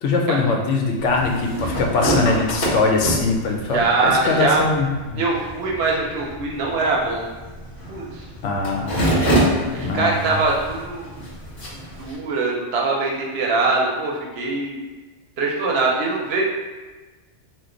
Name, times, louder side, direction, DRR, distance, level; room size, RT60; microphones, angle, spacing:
voice 1, 0.0-5.2 8.4-10.4, left 3 dB, 80° left, 1 dB, 0.9 m, -22 dB
sound 1, 1.0-12.1, right 1 dB, 35° left, 1.3 m, -27 dB
voice 2, 3.7-4.6 5.2-7.3 7.9-8.3 9.7-11.1 11.7-14.8 15.4-16.4, right 3 dB, 65° right, -2 dB, 0.7 m, -22 dB
3.0 x 2.1 x 3.7 m, 1.3 s
omnidirectional pair, 1.2 m